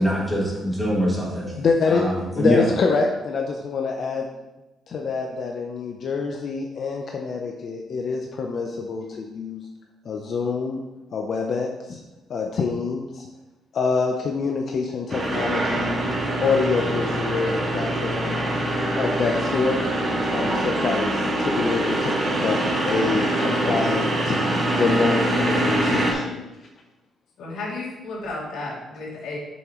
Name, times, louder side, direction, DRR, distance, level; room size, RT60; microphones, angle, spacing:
voice 1, 0.0-1.5 1.9-2.6, equal, 5° left, -5 dB, 2.2 m, -23 dB
voice 2, 1.6-2.1 2.4-4.3 4.9-9.7 10.0-10.8 11.1-12.0 12.3-13.3 13.7-16.0 16.4-26.4, left 4 dB, 45° left, 2 dB, 0.7 m, -26 dB
sound 1, 15.1-26.1, right 1 dB, 30° right, 2.0 m, -24 dB
voice 3, 27.4-29.4, left 2 dB, 80° left, -4 dB, 2.7 m, -33 dB
8.5 x 7.1 x 3.1 m, 1.0 s
cardioid pair, 145°, 0 cm